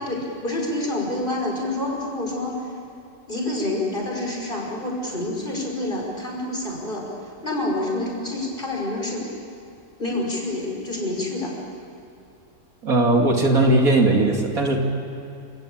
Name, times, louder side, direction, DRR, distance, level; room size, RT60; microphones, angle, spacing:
voice 1, 0.0-2.7 3.3-7.1 7.4-9.3 10.0-11.6, left 1 dB, 30° left, -1 dB, 5.7 m, -27 dB
voice 2, 12.8-14.8, right 2 dB, 65° right, 2 dB, 2.8 m, -18 dB
28.5 x 18.0 x 8.7 m, 2.7 s
omnidirectional pair, 1.7 m